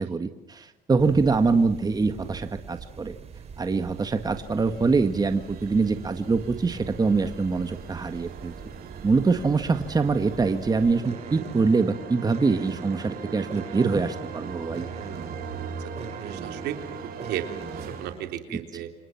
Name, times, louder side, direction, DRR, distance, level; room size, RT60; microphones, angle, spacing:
voice 1, 0.0-3.1 3.6-8.5 9.0-14.9, right 4 dB, 25° right, 8 dB, 1.8 m, -24 dB
sound 1, 1.0-18.4, right 6 dB, 40° right, 3.3 m, -43 dB
sound 2, 3.4-18.1, right 6 dB, 65° right, 4.7 m, -40 dB
voice 2, 15.8-16.8 17.2-18.9, right 11 dB, 85° right, 6 dB, 3.5 m, -35 dB
30.0 x 26.5 x 6.0 m, 0.82 s
cardioid pair, 110°, 17 cm